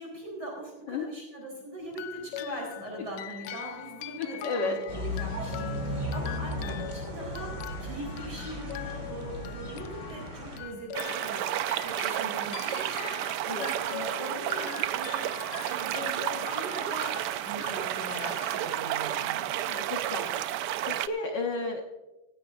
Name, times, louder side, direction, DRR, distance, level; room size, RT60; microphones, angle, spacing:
voice 1, 0.0-17.1 17.4-19.4, right 1 dB, 50° right, -3 dB, 4.4 m, -41 dB
sound 1, 1.9-19.3, left 13 dB, 80° left, 0.9 m, -42 dB
voice 2, 4.2-4.8 13.5-13.7 19.7-20.4 20.9-21.8, left 3 dB, 60° left, 2 dB, 1.6 m, -32 dB
sound 2, 4.9-10.6, left 1 dB, 35° right, 3.5 m, -35 dB
sound 3, 10.9-21.1, right 12 dB, 90° right, 0.9 m, -31 dB
16.5 x 16.0 x 2.6 m, 1.1 s
omnidirectional pair, 2.4 m